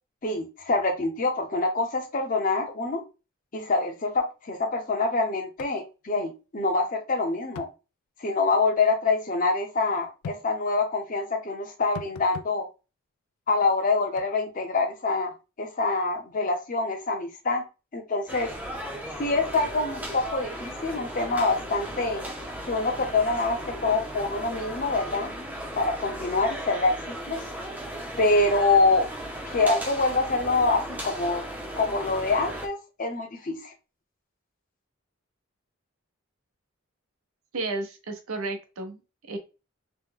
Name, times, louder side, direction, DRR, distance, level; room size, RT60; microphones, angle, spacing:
voice 1, 0.2-3.0 3.5-7.7 8.2-12.7 13.5-15.3 15.6-17.6 17.9-18.5 19.2-22.2 22.7-25.3 25.7-27.5 28.2-29.1 29.5-31.4 31.8-33.7, left 3 dB, 40° left, 5 dB, 0.7 m, -25 dB
sound 1, 5.6-5.8 6.1-6.2 7.5-7.8 10.2-10.4 11.9-12.5 14.2-14.3, left 6 dB, 85° left, 0.3 m, -39 dB
sound 2, 18.3-32.7, equal, 10° right, 0.5 m, -36 dB
voice 2, 37.5-39.0 39.3-39.4, right 3 dB, 80° right, 5 dB, 0.8 m, -32 dB
3.1 x 2.1 x 3.6 m, 0.30 s
head